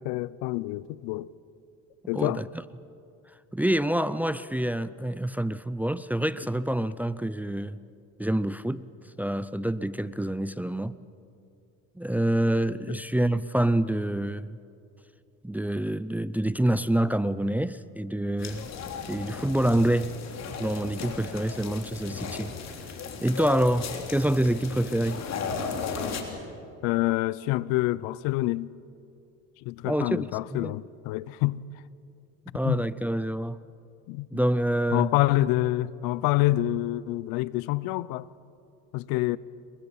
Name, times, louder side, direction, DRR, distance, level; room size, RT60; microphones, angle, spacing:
voice 1, 0.0-1.3 2.1-2.4 12.9-13.0 26.8-28.7 29.6-31.6 32.6-32.8 34.1-34.3 34.9-38.3 38.9-39.4, left 17 dB, 80° left, 0.7 m, -27 dB
voice 2, 2.1-2.5 3.5-7.8 8.2-8.9 9.2-11.0 12.0-14.6 15.4-18.7 19.1-20.2 20.6-22.5 23.2-25.2 29.8-30.7 32.5-33.6 34.3-35.1, right 1 dB, 5° right, 0.5 m, -27 dB
sound 1, 18.4-26.2, left 5 dB, 50° left, 3.4 m, -36 dB
27.5 x 23.0 x 5.7 m
supercardioid pair, 100°, 35 cm